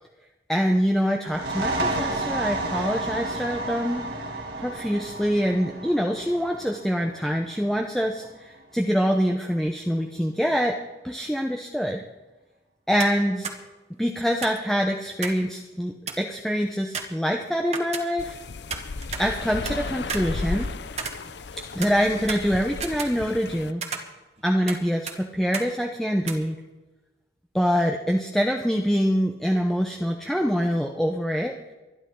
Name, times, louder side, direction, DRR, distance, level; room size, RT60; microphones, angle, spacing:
voice 1, 0.5-4.0 4.6-10.8 11.0-12.0 12.9-13.5 14.0-18.4 19.2-20.7 21.7-23.8 24.4-26.6 27.5-31.6, equal, ahead, 2 dB, 0.8 m, -25 dB
sound 1, 1.2-8.6, right 2 dB, 90° right, 3.6 m, -31 dB
sound 2, 13.0-13.2 13.4-13.6 14.4-15.5 15.7-15.8 16.1-16.4 16.9-18.4 18.7-19.8 20.1-21.5 21.8-23.5 23.8-24.8 25.1-25.2 25.5-25.7 26.2-26.3, right 5 dB, 35° right, 1.7 m, -34 dB
sound 3, 18.2-23.7, left 3 dB, 70° left, 0.7 m, -34 dB
24.5 x 11.0 x 3.9 m, 1.1 s
head